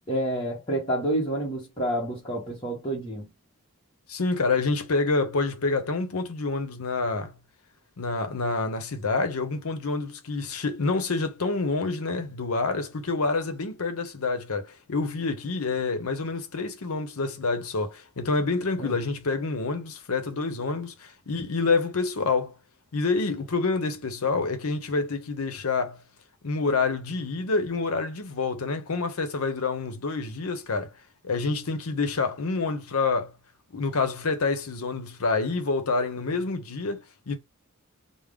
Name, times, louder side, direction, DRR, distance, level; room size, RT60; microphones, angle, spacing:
voice 1, 0.1-3.3 18.8-18.9, right 1 dB, 25° left, 0.8 m, -29 dB
voice 2, 4.1-7.3 8.0-22.5 22.9-26.0 26.4-30.9 31.2-33.3 33.7-37.4, left 3 dB, 80° left, 0.7 m, -27 dB
3.5 x 2.0 x 3.5 m
head